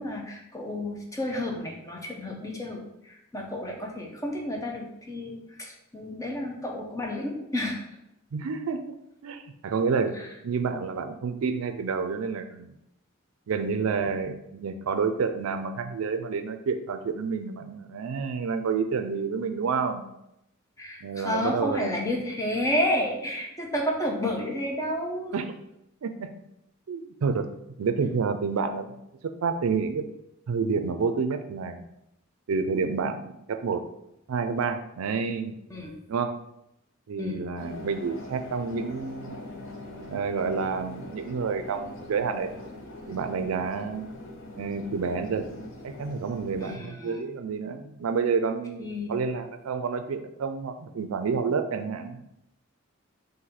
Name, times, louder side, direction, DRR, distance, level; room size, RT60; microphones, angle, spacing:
voice 1, 0.0-7.8 10.2-10.3 20.8-25.3 35.7-35.9 37.2-37.4 46.6-47.2 48.8-49.1, left 1 dB, 15° left, 0 dB, 0.7 m, -31 dB
voice 2, 8.3-9.0 9.2-10.1 10.4-12.7 13.5-20.0 21.0-22.0 25.3-25.5 26.0-26.3 26.9-27.5 27.8-28.9 29.2-30.1 30.5-31.8 32.5-33.8 34.3-35.5 36.1-36.4 37.1-39.4 40.1-42.6 43.1-44.1 44.6-45.5 45.8-52.2, right 5 dB, 80° right, 9 dB, 0.4 m, -29 dB
sound 1, 37.6-46.8, left 2 dB, 60° left, 0.7 m, -42 dB
4.0 x 2.7 x 4.1 m, 0.82 s
head